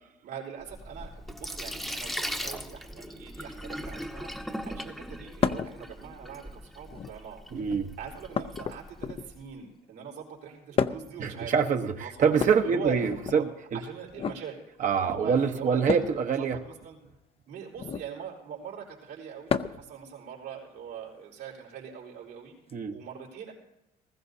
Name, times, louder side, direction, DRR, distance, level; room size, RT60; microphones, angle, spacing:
voice 1, 0.2-7.4 8.0-11.5 12.0-12.3 12.6-13.0 13.3-13.5 13.7-14.6 15.0-17.0 17.5-22.6 22.9-23.5, right 7 dB, 80° right, -3 dB, 4.2 m, -42 dB
Sink (filling or washing), 0.6-9.4, equal, ahead, 0.9 m, -39 dB
sound 1, 5.4-5.7 6.8-7.3 8.3-9.4 10.8-11.2 12.3-13.4 14.1-14.4 15.9-16.2 17.7-18.1 19.5-19.9 21.4-21.5 22.7-22.8, left 6 dB, 35° left, 0.6 m, -31 dB
voice 2, 7.5-7.9 11.2-13.5 13.7-13.8 14.8-16.6 22.7-22.9, right 6 dB, 50° right, 5 dB, 1.1 m, -25 dB
20.0 x 15.0 x 2.8 m, 0.88 s
cardioid pair, 110°, 17 cm